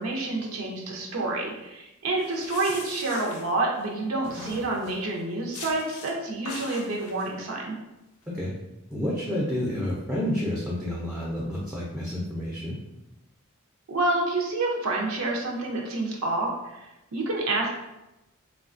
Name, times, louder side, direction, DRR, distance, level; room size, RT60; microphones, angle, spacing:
voice 1, 0.0-7.8 13.9-17.7, right 2 dB, 80° right, -1 dB, 0.5 m, -28 dB
sound 1, 2.2-3.9 4.2-5.1 5.5-6.1 6.5-7.3, left 3 dB, 85° left, 0.5 m, -40 dB
voice 2, 8.9-12.8, left 1 dB, 5° right, -6 dB, 0.4 m, -29 dB
3.1 x 2.2 x 2.4 m, 0.95 s
head